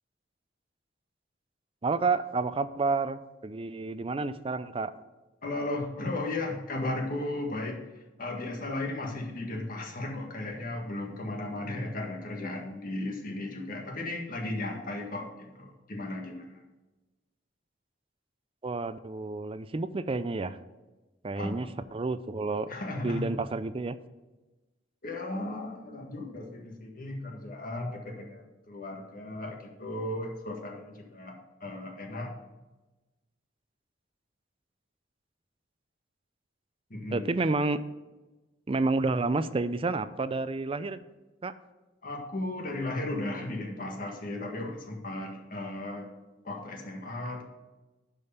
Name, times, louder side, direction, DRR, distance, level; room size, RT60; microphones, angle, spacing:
voice 1, 1.8-4.9 18.6-20.6 21.2-21.7 21.9-22.7 23.0-24.0 37.1-37.8 38.7-41.0 41.4-41.5, right 3 dB, 30° right, 13 dB, 0.4 m, -30 dB
voice 2, 5.4-16.6 21.4-21.7 22.7-23.3 25.0-32.3 36.9-37.3 42.0-46.1 46.4-47.4, left 2 dB, 50° left, 1 dB, 1.8 m, -35 dB
11.0 x 5.2 x 5.7 m, 1.1 s
head